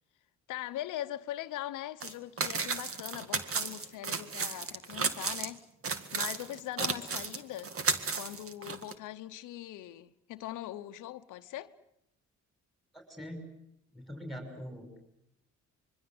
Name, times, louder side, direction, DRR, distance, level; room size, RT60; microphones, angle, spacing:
voice 1, 0.5-5.6 6.1-7.7 8.1-11.7, left 14 dB, 90° left, 1.0 m, -41 dB
sound 1, 2.0-2.1 2.4-5.5 5.8-8.9, right 5 dB, 45° right, 2.0 m, -33 dB
voice 2, 12.9-13.4 13.9-14.9, equal, ahead, 6.2 m, -42 dB
25.0 x 23.0 x 7.9 m
cardioid pair, 90°, 30 cm